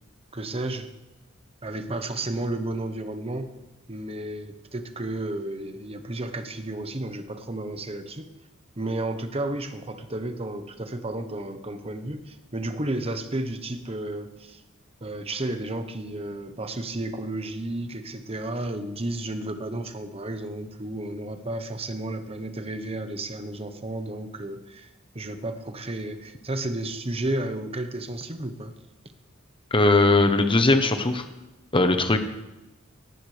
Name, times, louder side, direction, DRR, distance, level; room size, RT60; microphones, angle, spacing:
voice 1, 0.3-0.9 1.6-3.5 3.9-8.3 8.8-14.6 15.0-24.9 25.1-28.7, right 1 dB, 30° right, 8 dB, 1.1 m, -32 dB
voice 2, 29.7-31.2 31.7-32.2, left 2 dB, 25° left, 7 dB, 1.0 m, -19 dB
19.0 x 14.0 x 3.4 m, 1.0 s
head